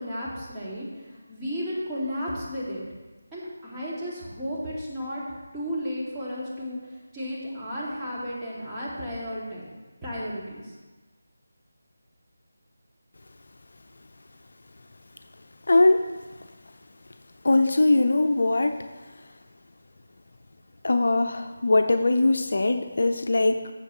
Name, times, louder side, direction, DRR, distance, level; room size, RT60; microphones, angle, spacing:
voice 1, 0.0-2.8 3.3-5.2 5.5-9.7 10.0-10.7, equal, 10° right, -10 dB, 2.4 m, -33 dB
voice 2, 15.7-16.0 17.4-18.8 20.8-23.7, left 2 dB, 60° left, 7 dB, 0.6 m, -21 dB
14.0 x 7.4 x 3.1 m, 1.3 s
figure-of-eight pair, 160°, 0 cm